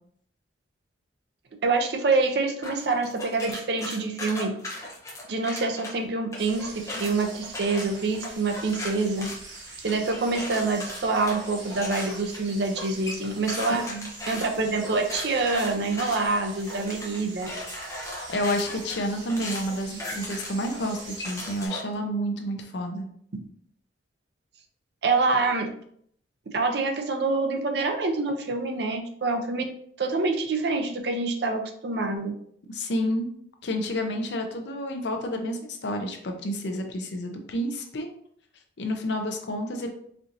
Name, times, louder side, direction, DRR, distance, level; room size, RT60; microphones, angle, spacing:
voice 1, 1.6-4.5 5.3-9.3 9.8-13.8 14.3-17.5 25.0-25.7 26.5-29.6 30.0-32.3, right 3 dB, 60° right, 4 dB, 0.5 m, -26 dB
sound 1, 2.6-5.9 6.3-21.9, left 1 dB, 15° left, 0.6 m, -37 dB
sound 2, 6.4-21.7, right 2 dB, 75° right, 1.1 m, -44 dB
voice 2, 13.7-14.1 18.3-23.1 32.7-33.3 33.6-38.1 38.8-39.9, equal, 65° left, 4 dB, 0.5 m, -30 dB
4.4 x 2.6 x 2.6 m, 0.65 s
head